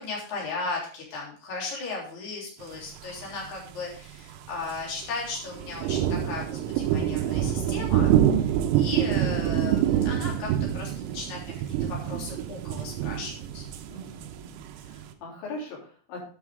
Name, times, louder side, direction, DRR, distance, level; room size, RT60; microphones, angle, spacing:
voice 1, 0.0-8.1 8.7-10.5 10.7-11.4 11.8-13.7, left 3 dB, 40° left, -3 dB, 4.1 m, -36 dB
sound 1, 3.5-3.8 4.2-4.4 4.6-5.0 5.5-15.1, right 10 dB, 90° right, 3.6 m, -26 dB
voice 2, 8.3-8.7 13.9-16.3, left 1 dB, 65° left, -3 dB, 5.5 m, -41 dB
10.0 x 7.5 x 3.6 m, 0.43 s
omnidirectional pair, 5.9 m